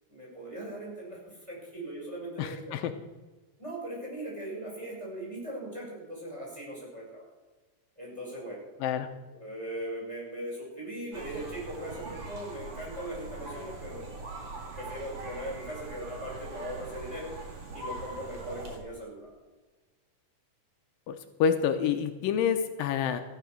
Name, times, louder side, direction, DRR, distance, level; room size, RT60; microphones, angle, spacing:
voice 1, 0.1-2.8 3.6-7.2 8.0-8.7 9.3-14.1 14.5-17.3 17.7-19.3, right 1 dB, 10° right, -4 dB, 5.8 m, -39 dB
voice 2, 2.4-2.9 8.8-9.1 21.1-23.2, left 7 dB, 85° left, 7 dB, 2.5 m, -28 dB
sound 1, 11.1-18.8, right 3 dB, 45° right, 2.8 m, -42 dB
15.0 x 10.5 x 6.4 m, 1.2 s
omnidirectional pair, 4.1 m